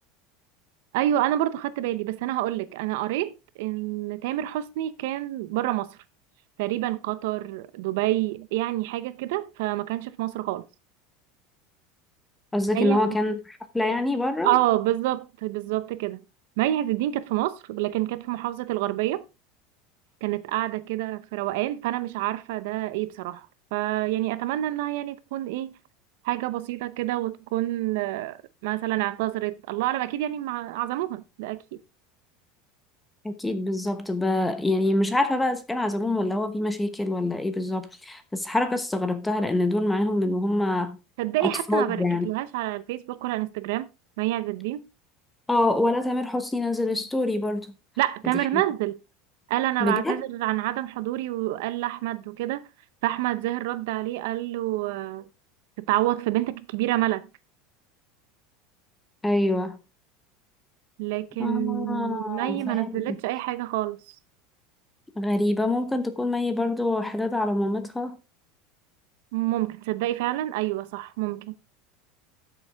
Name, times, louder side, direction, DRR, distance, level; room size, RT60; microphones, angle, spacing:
voice 1, 0.9-6.0 6.6-10.6 12.7-13.0 14.4-16.2 16.6-19.2 20.2-23.5 23.7-25.8 26.2-31.6 41.2-43.9 44.2-44.8 48.0-49.0 49.5-52.7 53.0-55.3 55.8-57.3 61.0-64.1 69.3-71.5, right 15 dB, 70° right, 0.8 m, -28 dB
voice 2, 12.5-14.6 33.2-41.0 41.4-42.3 45.5-47.7 48.5-48.6 49.8-50.2 59.2-59.8 61.4-63.2 65.2-68.2, left 2 dB, 5° left, 1.1 m, -25 dB
12.5 x 7.1 x 3.5 m
supercardioid pair, 165°, 0 cm